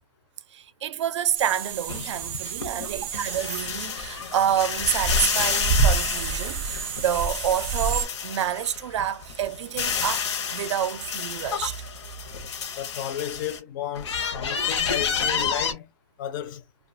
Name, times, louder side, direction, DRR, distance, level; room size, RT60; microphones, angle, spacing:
voice 1, 0.5-11.9, right 10 dB, 80° right, 0.4 m, -28 dB
sound 1, 1.3-8.0, right 5 dB, 30° right, 0.5 m, -29 dB
sound 2, 1.9-8.8 9.2-13.6 13.9-15.7, left 6 dB, 75° left, 0.8 m, -30 dB
voice 2, 12.8-15.9 16.2-16.6, left 10 dB, 45° left, 0.4 m, -33 dB
2.4 x 2.3 x 2.5 m
hypercardioid pair, 155°, 15 cm